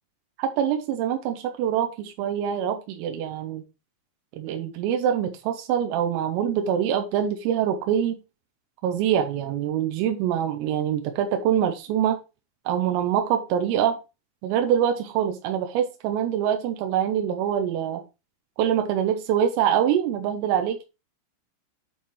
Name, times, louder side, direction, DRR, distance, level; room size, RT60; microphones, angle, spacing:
voice 1, 0.4-3.6 4.4-8.2 8.8-12.2 12.7-14.0 14.4-18.0 18.6-20.8, right 9 dB, 90° right, 5 dB, 3.6 m, -24 dB
8.9 x 4.3 x 3.1 m, 0.27 s
omnidirectional pair, 5.8 m